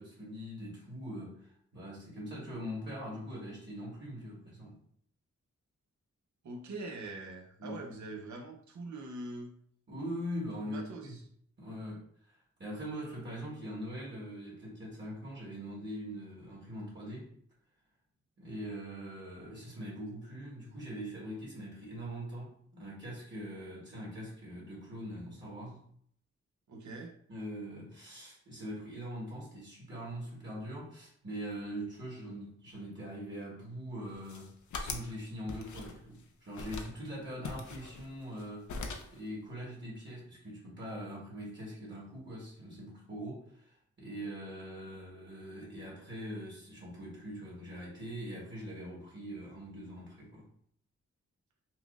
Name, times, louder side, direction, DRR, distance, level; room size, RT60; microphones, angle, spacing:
voice 1, 0.0-4.8 7.6-7.8 9.9-11.2 11.6-17.3 18.4-25.9 27.3-38.7 39.1-50.5, equal, 40° right, -5 dB, 1.3 m, -42 dB
voice 2, 6.4-9.5 10.6-11.2 26.7-27.1, right 2 dB, 75° right, 1 dB, 0.8 m, -43 dB
sound 1, 34.1-35.1 35.5-36.2 36.5-37.0 37.4-38.4 38.7-39.2, left 3 dB, 80° left, 0.5 m, -41 dB
5.8 x 2.0 x 2.4 m, 0.64 s
wide cardioid pair, 100°, 29 cm